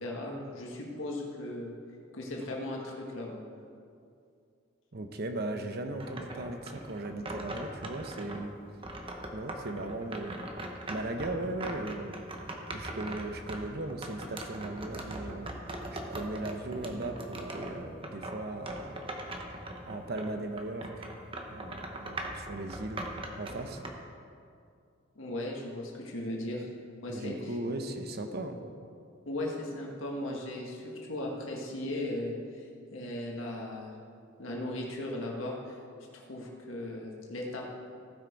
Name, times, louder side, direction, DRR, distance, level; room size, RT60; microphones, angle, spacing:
voice 1, 0.0-1.7 2.1-3.4 25.2-26.7 27.0-27.6 29.3-33.9 34.4-35.8 36.1-37.7, left 1 dB, 80° left, -2 dB, 1.6 m, -37 dB
voice 2, 4.9-8.6 9.3-10.4 10.9-12.2 12.7-15.5 15.9-19.1 19.8-21.1 21.5-23.0 23.4-23.8 27.1-28.6, right 2 dB, 50° right, 6 dB, 0.9 m, -37 dB
sound 1, 6.0-8.4 8.8-20.3 20.6-23.9, right 1 dB, 25° right, 0.9 m, -40 dB
15.5 x 6.6 x 4.7 m, 2.4 s
head